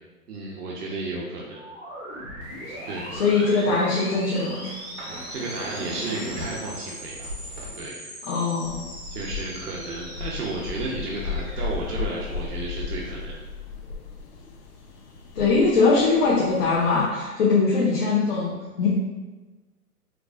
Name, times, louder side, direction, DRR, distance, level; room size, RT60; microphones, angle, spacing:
voice 1, 0.3-1.6 2.9-3.1 5.0-7.3 7.7-8.0 9.1-13.4, right 2 dB, 85° right, -3 dB, 0.8 m, -33 dB
sound 1, 1.5-13.2, equal, ahead, 0.7 m, -40 dB
sound 2, 2.4-7.7, right 1 dB, 45° right, 0.7 m, -39 dB
voice 2, 3.1-4.7 5.1-5.3 8.3-8.8 15.3-18.9, left 4 dB, 40° left, -7 dB, 0.7 m, -21 dB
sound 3, 8.6-17.1, left 5 dB, 80° left, 0.7 m, -35 dB
4.5 x 2.4 x 2.5 m, 1.2 s
hypercardioid pair, 140°, 45 cm